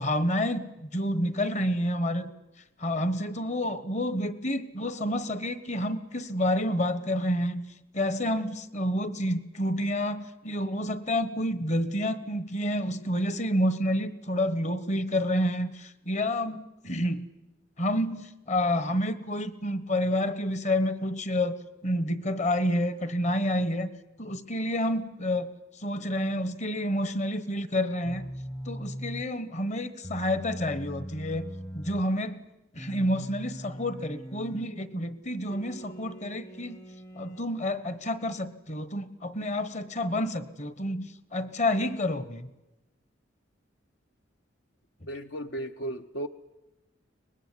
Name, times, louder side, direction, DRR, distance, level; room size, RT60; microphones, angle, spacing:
voice 1, 0.0-2.3 2.8-7.6 7.9-17.3 17.8-23.9 24.2-25.5 25.8-28.3 28.6-32.4 32.7-36.8 37.1-42.5, left 1 dB, 40° left, 1.3 m, -29 dB
sound 1, 28.0-29.3 30.0-32.1 32.7-34.7 35.5-37.5, equal, 20° left, 0.8 m, -40 dB
voice 2, 45.1-46.3, right 1 dB, 65° left, 0.8 m, -35 dB
23.5 x 20.0 x 9.8 m
head